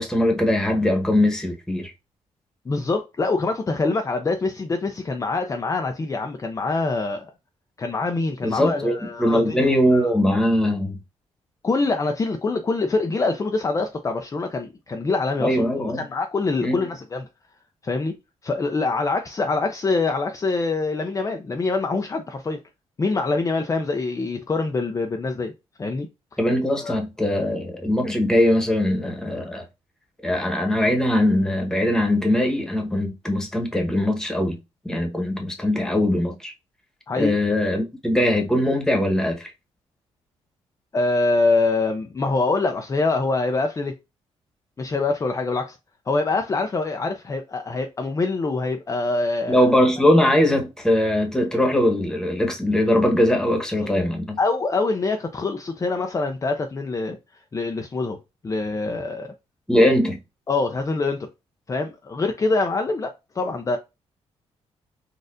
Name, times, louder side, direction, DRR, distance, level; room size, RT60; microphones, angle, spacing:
voice 1, 0.0-1.9 8.4-11.0 15.4-16.0 16.6-16.8 26.4-29.6 30.2-34.6 34.8-36.5 37.1-39.5 49.5-54.4 59.7-60.2, left 1 dB, 5° left, 1.2 m, -21 dB
voice 2, 2.7-7.3 7.8-10.1 11.6-17.3 17.8-18.2 18.4-22.6 23.0-25.5 25.8-26.1 26.7-27.0 37.1-37.4 40.9-43.9 44.8-45.8 46.1-49.7 54.4-57.2 57.5-58.2 58.4-59.3 60.5-61.3 61.7-63.8, left 3 dB, 30° left, 0.5 m, -24 dB
4.1 x 2.5 x 2.5 m
cardioid pair, 80°, 11 cm